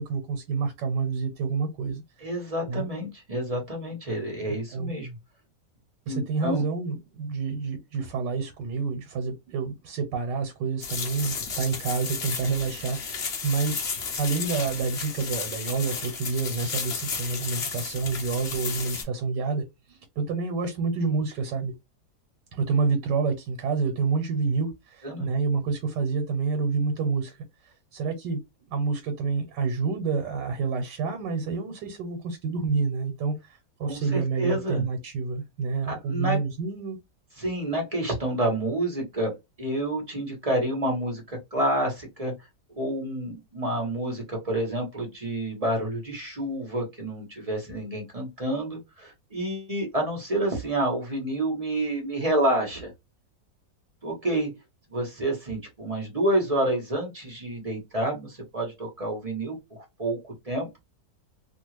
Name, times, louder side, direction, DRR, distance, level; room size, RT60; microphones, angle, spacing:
voice 1, 0.0-2.9 4.5-4.9 6.1-13.8 14.2-21.7 22.5-28.4 28.7-37.0, right 4 dB, 85° right, 1.3 m, -28 dB
voice 2, 2.2-5.1 6.1-6.6 25.0-25.3 33.8-34.8 35.9-36.4 37.4-42.3 42.8-52.9 54.0-54.5 54.9-60.7, right 1 dB, 25° right, 0.9 m, -29 dB
sound 1, 10.8-19.0, left 5 dB, 50° left, 0.8 m, -33 dB
2.8 x 2.4 x 3.0 m
omnidirectional pair, 1.8 m